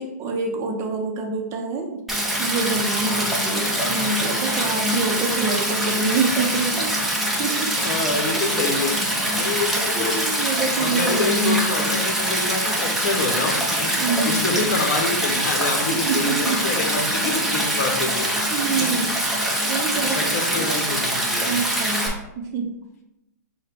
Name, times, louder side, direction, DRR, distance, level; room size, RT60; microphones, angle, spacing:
voice 1, 0.0-2.0 2.4-7.0 7.4-7.7 8.5-8.6 9.4-9.6 10.0-12.0 14.0-14.4 15.9-16.6 18.2-19.2 19.6-20.8 21.4-22.7, right 3 dB, 30° right, 1 dB, 0.8 m, -26 dB
Stream, 2.1-22.1, right 1 dB, ahead, 0.9 m, -24 dB
voice 2, 7.8-8.9 9.4-10.2 10.8-18.4 18.8-18.9 20.0-21.5, left 3 dB, 55° left, 3 dB, 1.0 m, -27 dB
6.3 x 2.3 x 3.5 m, 0.89 s
hypercardioid pair, 125°, 10 cm